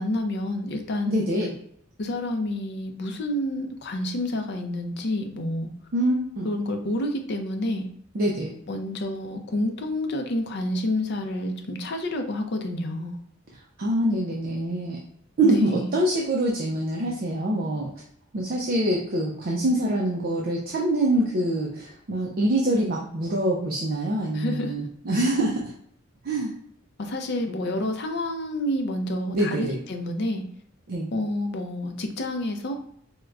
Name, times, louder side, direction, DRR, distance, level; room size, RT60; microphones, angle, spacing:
voice 1, 0.0-1.3 2.0-5.7 6.4-7.9 8.7-13.2 15.4-15.9 24.3-24.7 27.0-30.4 31.1-32.8, left 1 dB, 50° left, 5 dB, 0.5 m, -29 dB
voice 2, 1.0-1.5 5.9-6.5 8.1-8.5 13.8-15.0 15.4-17.9 18.3-25.7 26.2-26.5 29.3-29.8 30.9-31.1, right 1 dB, 45° right, -2 dB, 0.4 m, -25 dB
4.5 x 2.1 x 2.4 m, 0.68 s
head